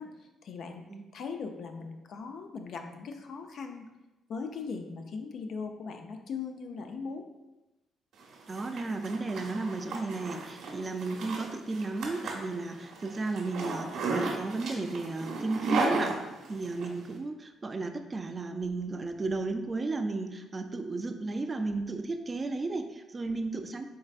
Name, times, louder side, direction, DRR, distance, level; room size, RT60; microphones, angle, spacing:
voice 1, 0.0-0.9 1.1-3.9 4.3-7.2, left 5 dB, 65° left, 5 dB, 0.4 m, -39 dB
Zipper (clothing), 8.2-16.9, right 3 dB, 75° right, 0.7 m, -35 dB
voice 2, 8.5-16.2 16.5-23.9, right 3 dB, 30° right, 6 dB, 0.3 m, -34 dB
4.5 x 3.2 x 2.4 m, 1.0 s
cardioid pair, 90°, 0 cm